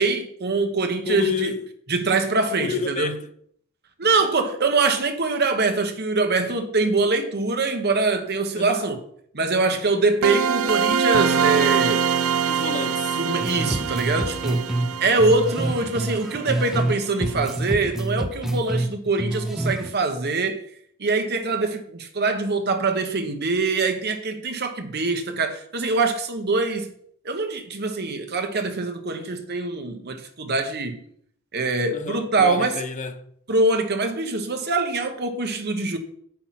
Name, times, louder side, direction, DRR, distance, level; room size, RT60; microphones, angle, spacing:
voice 1, 0.0-1.5 1.9-3.1 4.0-9.0 9.3-12.1 13.2-14.7 15.0-20.6 21.0-26.9 27.2-31.0 31.5-32.8 33.5-36.0, right 3 dB, 50° right, 1.2 m, -23 dB
voice 2, 1.1-1.7 2.6-3.3 4.0-4.5 8.5-8.9 12.5-13.2 31.9-33.3, left 5 dB, 35° left, 0.8 m, -30 dB
sound 1, 10.2-16.9, right 6 dB, 85° right, 0.6 m, -24 dB
sound 2, 13.4-16.9 17.2-19.9, right 1 dB, ahead, 0.6 m, -27 dB
8.9 x 5.8 x 5.8 m
head